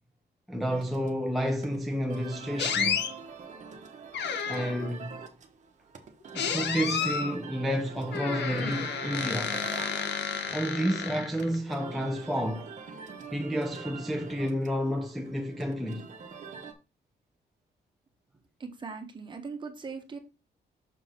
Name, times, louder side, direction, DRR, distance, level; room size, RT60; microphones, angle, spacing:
voice 1, 0.5-3.1 4.5-5.2 6.3-9.7 10.5-12.7 13.3-16.1, equal, ahead, 0.6 m, -30 dB
sound 1, 0.7-16.7, right 5 dB, 45° right, 1.1 m, -44 dB
sound 2, 2.6-3.1 4.1-4.9 6.3-7.3 8.1-11.6, left 7 dB, 85° left, 1.1 m, -31 dB
voice 2, 18.6-20.2, right 5 dB, 25° right, 1.4 m, -39 dB
6.3 x 3.8 x 5.7 m
cardioid pair, 140°, 18 cm